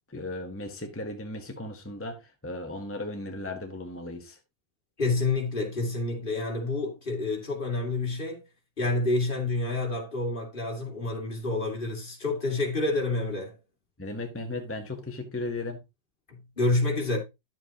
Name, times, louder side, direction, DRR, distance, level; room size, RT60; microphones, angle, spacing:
voice 1, 0.1-4.4 14.0-15.8, left 2 dB, 10° left, 0.7 m, -36 dB
voice 2, 5.0-8.4 8.8-13.5 16.3-17.2, left 2 dB, 30° left, 2.4 m, -28 dB
11.0 x 7.5 x 2.9 m
omnidirectional pair, 2.0 m